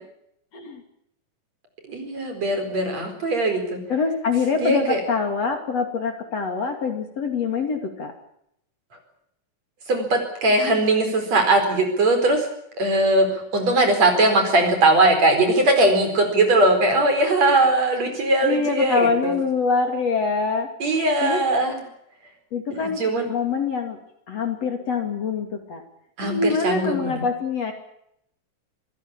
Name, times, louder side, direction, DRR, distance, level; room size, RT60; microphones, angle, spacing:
voice 1, 1.9-3.8 4.6-5.0 9.9-12.5 12.8-13.3 13.5-19.4 20.8-21.8 22.7-23.3 26.2-27.2, right 2 dB, 45° right, 6 dB, 5.6 m, -20 dB
voice 2, 3.9-8.1 18.4-20.7 21.2-21.4 22.5-23.0 23.3-24.0 24.3-25.8 26.2-27.7, left 5 dB, 50° left, 5 dB, 3.4 m, -24 dB
25.5 x 15.5 x 8.7 m, 0.75 s
omnidirectional pair, 4.1 m